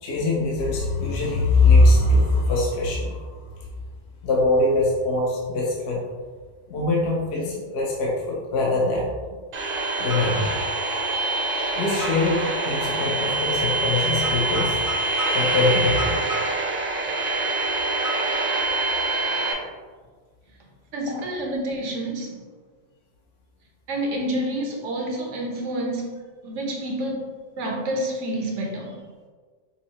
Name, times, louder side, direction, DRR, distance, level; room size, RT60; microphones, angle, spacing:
voice 1, 0.0-3.4 4.2-6.0 6.7-9.4 10.0-10.5 11.7-14.8 15.3-16.2 21.1-21.2, left 2 dB, 65° left, -3 dB, 0.8 m, -22 dB
sound 1, 9.5-19.5, right 2 dB, 50° right, 0.8 m, -25 dB
voice 2, 20.9-22.4 23.9-26.1 26.4-27.2 27.6-29.0, right 1 dB, 75° right, -1 dB, 1.1 m, -28 dB
5.4 x 2.0 x 2.9 m, 1.5 s
omnidirectional pair, 1.3 m